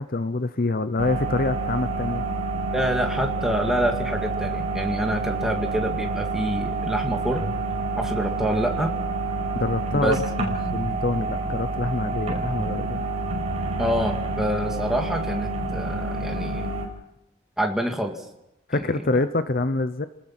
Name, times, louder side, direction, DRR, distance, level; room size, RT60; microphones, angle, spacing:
voice 1, 0.0-2.2 9.5-10.2 10.7-13.1 18.7-20.1, left 2 dB, 45° left, 11 dB, 0.7 m, -26 dB
sound 1, 1.0-16.9, right 3 dB, 30° right, 5.7 m, -28 dB
voice 2, 2.7-7.5 8.0-8.9 9.9-10.2 13.8-16.7 17.6-18.2 18.7-19.2, equal, ahead, 2 dB, 2.2 m, -27 dB
29.5 x 19.5 x 6.0 m, 0.91 s
head